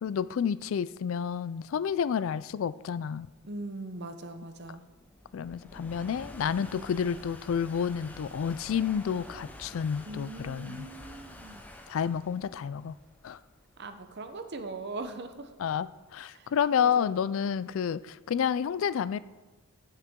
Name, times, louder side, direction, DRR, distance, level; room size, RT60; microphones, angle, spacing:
voice 1, 0.0-3.3 5.3-10.9 11.9-12.9 13.2-13.4 15.6-19.2, left 7 dB, 65° left, 17 dB, 0.3 m, -30 dB
sound 1, 2.7-16.1, left 1 dB, 5° left, 0.7 m, -49 dB
voice 2, 3.4-4.8 10.0-11.6 13.8-15.5 16.3-16.5 16.8-17.2, right 2 dB, 50° right, 8 dB, 0.8 m, -40 dB
15.0 x 6.5 x 3.7 m, 1.3 s
head